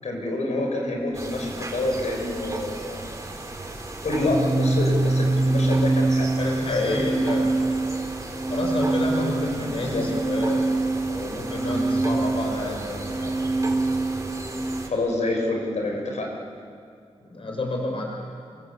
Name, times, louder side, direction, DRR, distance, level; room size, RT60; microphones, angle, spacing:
voice 1, 0.0-3.0 4.0-6.3 6.6-7.0 9.8-10.0 14.9-16.3, left 2 dB, 85° left, 0 dB, 5.8 m, -27 dB
sound 1, 1.1-14.9, right 2 dB, 25° right, 3.7 m, -36 dB
Organ, 4.1-14.8, right 2 dB, 80° right, 5.7 m, -25 dB
voice 2, 6.4-7.5 8.5-10.7 11.1-13.3 17.2-18.3, left 2 dB, 50° left, 1 dB, 5.5 m, -29 dB
28.5 x 24.5 x 8.3 m, 2.3 s
wide cardioid pair, 140°, 12 cm